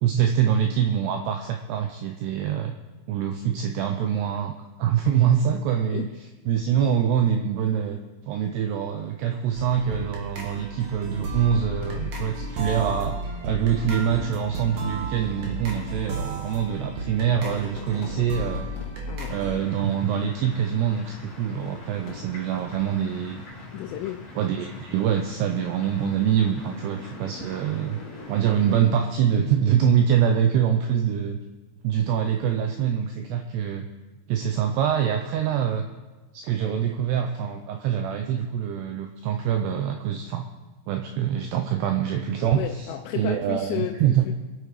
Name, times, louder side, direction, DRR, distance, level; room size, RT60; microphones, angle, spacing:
voice 1, 0.0-2.8 3.1-4.5 4.8-6.1 6.5-8.0 8.3-18.7 19.3-23.4 24.4-28.0 28.3-31.4 31.8-33.9 34.3-35.9 36.3-40.5 40.9-42.9 43.1-44.2, right 8 dB, 80° right, 5 dB, 2.4 m, -24 dB
sound 1, 9.5-19.6, right 2 dB, 50° right, 2.5 m, -33 dB
Fireworks, 11.8-13.4 14.3-14.4 15.1-20.3 21.4-23.2 23.7-24.2, left 4 dB, 55° left, 2.9 m, -45 dB
voice 2, 19.1-19.4 23.7-24.2 42.5-44.3, left 13 dB, 85° left, 3 dB, 3.3 m, -32 dB
sound 2, 19.2-28.8, left 2 dB, 30° left, 4.2 m, -42 dB
23.0 x 8.7 x 4.9 m, 1.2 s
omnidirectional pair, 5.7 m